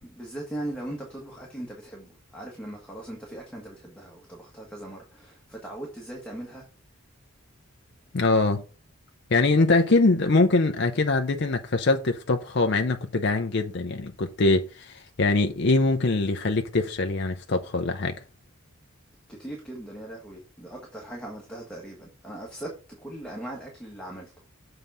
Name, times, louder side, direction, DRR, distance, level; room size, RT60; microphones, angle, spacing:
voice 1, 0.0-6.6 19.3-24.3, right 1 dB, 5° left, 1.5 m, -39 dB
voice 2, 8.1-8.6 9.3-18.2, left 3 dB, 50° left, 0.6 m, -23 dB
7.2 x 3.9 x 5.5 m
head